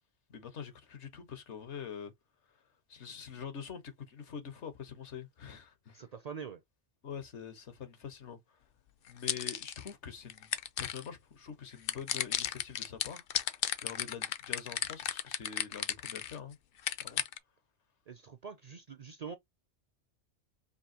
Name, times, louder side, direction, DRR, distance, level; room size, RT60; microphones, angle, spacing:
voice 1, 0.3-2.1 2.9-6.0 7.0-8.4 9.1-10.5 10.8-16.6 17.0-17.2, left 7 dB, 80° left, 1.4 m, -45 dB
voice 2, 5.9-6.6 18.1-19.3, right 6 dB, 50° right, 0.5 m, -44 dB
sound 1, 9.1-9.9 10.3-11.1 11.9-16.4 16.8-17.4, left 10 dB, 60° left, 0.7 m, -34 dB
5.4 x 2.7 x 2.8 m
omnidirectional pair, 1.2 m